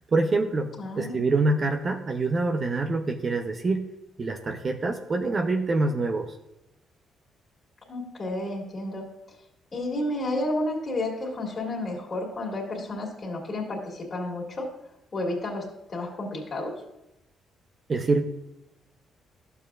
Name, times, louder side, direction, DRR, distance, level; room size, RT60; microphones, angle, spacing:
voice 1, 0.1-0.7 1.0-3.9 4.2-6.3 17.9-18.2, right 3 dB, 40° right, 5 dB, 0.7 m, -25 dB
voice 2, 0.8-1.2 7.9-9.1 9.7-14.7 15.1-16.7, left 1 dB, 35° left, -4 dB, 2.4 m, -31 dB
12.0 x 6.9 x 2.5 m, 0.86 s
cardioid pair, 90°, 0 cm